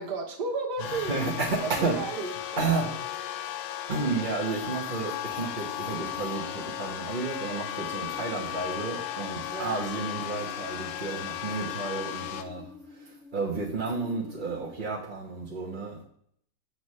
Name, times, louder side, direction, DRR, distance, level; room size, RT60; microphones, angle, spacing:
voice 1, 0.0-1.2 1.6-2.3 9.5-9.8, right 4 dB, 75° right, 2 dB, 1.7 m, -33 dB
sound 1, 0.8-12.4, left 12 dB, 85° left, 1.3 m, -36 dB
voice 2, 0.8-2.0 2.6-3.2 3.9-16.0, right 4 dB, 35° right, -4 dB, 1.1 m, -32 dB
sound 2, 4.9-14.8, left 6 dB, 55° left, 0.8 m, -48 dB
7.8 x 6.9 x 3.2 m, 0.66 s
omnidirectional pair, 1.8 m